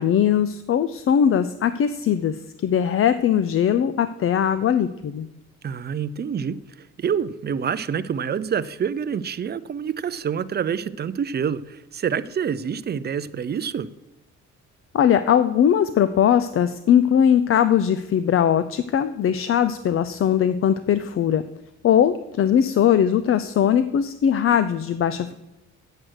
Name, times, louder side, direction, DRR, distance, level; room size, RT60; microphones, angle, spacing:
voice 1, 0.0-5.3 14.9-21.4 21.8-25.3, left 9 dB, 45° left, 12 dB, 0.5 m, -20 dB
voice 2, 5.6-13.9, right 7 dB, 35° right, 15 dB, 0.5 m, -27 dB
8.0 x 7.5 x 6.4 m, 0.98 s
cardioid pair, 90°, 30 cm